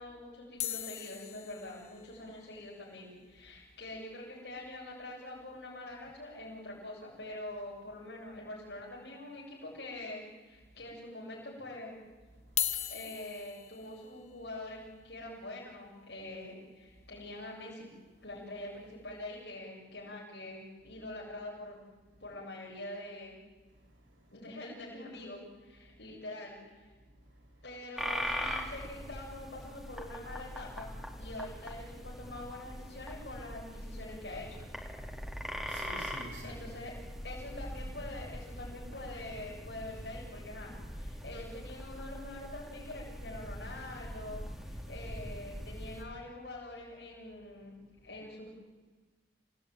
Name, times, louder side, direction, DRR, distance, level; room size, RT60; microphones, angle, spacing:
voice 1, 0.0-11.9 12.9-17.9 18.2-21.8 22.2-23.4 24.3-26.9 27.6-30.9 31.2-34.7 36.4-36.9 37.2-47.7 48.0-48.5, left 1 dB, 70° left, 7.8 m, -45 dB
sound 1, 0.6-4.9 5.2-5.3 5.5-5.7 6.1-6.2 7.6-7.7 8.3-8.9 9.4-9.5 10.3-10.4 12.4-18.5 19.1-19.3, left 12 dB, 35° left, 1.2 m, -42 dB
voice 2, 12.3-12.8 16.9-17.1 22.1-22.2 23.7-24.3 25.8-26.0 27.0-27.7 34.9-36.8 47.7-48.1, right 1 dB, 80° right, 7.0 m, -53 dB
sound 2, 28.0-46.0, equal, ahead, 2.8 m, -42 dB
28.5 x 18.5 x 9.4 m
head